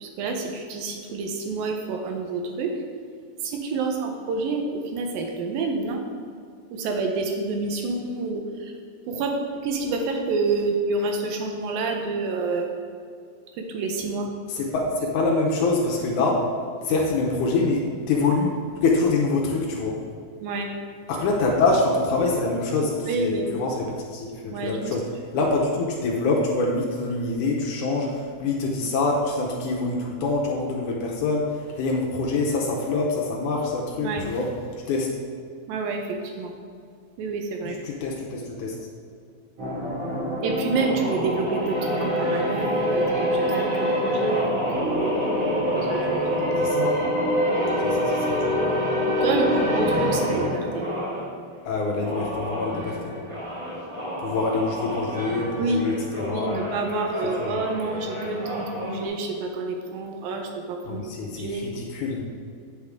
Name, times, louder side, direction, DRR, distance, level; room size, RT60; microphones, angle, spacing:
voice 1, 0.0-2.8 3.4-6.0 6.7-8.7 9.1-12.7 13.5-14.3 20.4-20.7 23.1-23.5 24.5-25.0 34.0-34.2 35.7-36.5 37.2-37.8 40.4-45.1 45.7-46.4 49.1-50.9 55.5-55.8 56.2-61.1 61.4-61.7, right 3 dB, 75° right, 3 dB, 2.2 m, -28 dB
voice 2, 14.5-16.5 16.8-20.0 21.1-25.0 25.3-34.5 34.9-35.1 37.6-38.7 46.6-47.0 47.8-48.6 51.6-53.0 54.2-56.6 57.4-57.5 60.9-62.3, left 3 dB, 80° left, -1 dB, 1.8 m, -25 dB
sound 1, 39.6-51.3 51.9-59.1, equal, 50° right, 2.3 m, -26 dB
9.0 x 6.5 x 3.6 m, 2.3 s
omnidirectional pair, 4.7 m